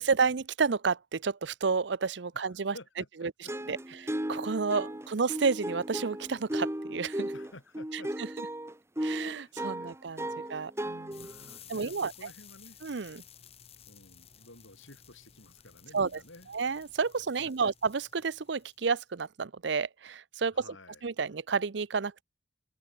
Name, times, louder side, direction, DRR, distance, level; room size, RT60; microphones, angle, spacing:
voice 1, 0.0-2.7 3.2-3.3 3.7-7.3 8.2-8.3 9.0-11.3 11.7-12.1 12.8-13.2 15.9-16.2 16.5-20.6 21.0-22.2, right 5 dB, 65° right, 0.6 m, -31 dB
voice 2, 2.3-3.5 7.3-8.1 9.4-9.9 10.3-10.5 10.8-12.8 13.9-16.5 17.4-17.7 20.5-21.1, left 2 dB, 80° left, 8.0 m, -53 dB
sound 1, 3.5-11.6, right 1 dB, 15° right, 1.4 m, -35 dB
sound 2, 11.1-19.0, left 9 dB, 30° left, 2.1 m, -54 dB
open air
head